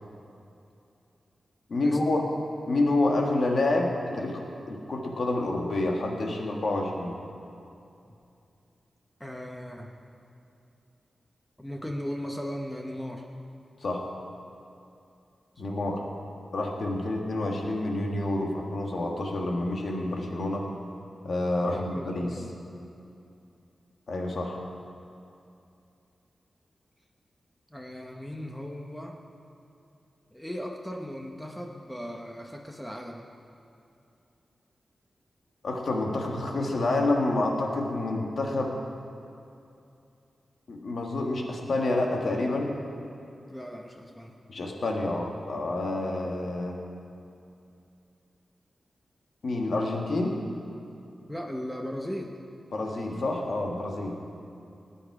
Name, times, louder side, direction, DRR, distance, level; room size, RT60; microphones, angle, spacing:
voice 1, 1.7-2.2 2.7-4.4 4.7-7.2 13.8-14.0 15.6-16.0 16.5-20.6 21.2-22.3 24.1-24.6 35.6-38.7 40.7-42.8 44.5-46.8 49.4-50.4 52.7-54.1, left 2 dB, 60° left, 0 dB, 1.7 m, -28 dB
voice 2, 9.2-10.0 11.6-13.2 15.5-15.6 21.6-22.6 27.7-29.2 30.3-33.3 43.5-44.4 51.3-52.4, equal, 5° left, 1 dB, 0.8 m, -37 dB
18.5 x 9.0 x 4.8 m, 2.6 s
wide cardioid pair, 130°, 0 cm